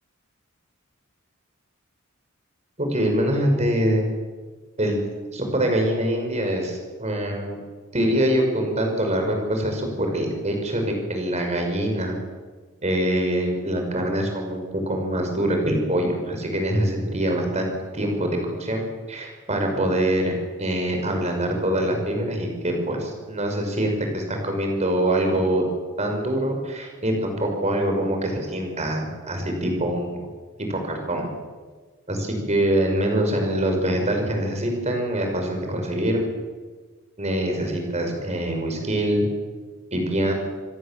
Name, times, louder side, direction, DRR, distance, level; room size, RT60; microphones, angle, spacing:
voice 1, 2.8-4.0 4.8-5.0 5.3-7.6 7.9-12.2 12.8-25.6 26.0-30.2 30.6-31.3 32.1-36.2 37.2-39.3 39.9-40.3, right 1 dB, 30° right, 3 dB, 5.4 m, -24 dB
27.0 x 17.5 x 7.5 m, 1.4 s
head